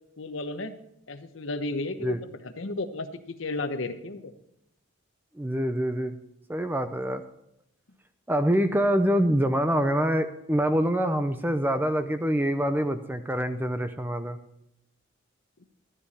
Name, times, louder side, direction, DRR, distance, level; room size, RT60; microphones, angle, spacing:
voice 1, 0.2-0.7 1.1-4.3, left 2 dB, 70° left, 9 dB, 1.0 m, -33 dB
voice 2, 5.3-6.2 6.5-7.2 8.3-14.4, equal, 10° right, 9 dB, 0.6 m, -25 dB
12.5 x 10.0 x 4.2 m, 0.82 s
head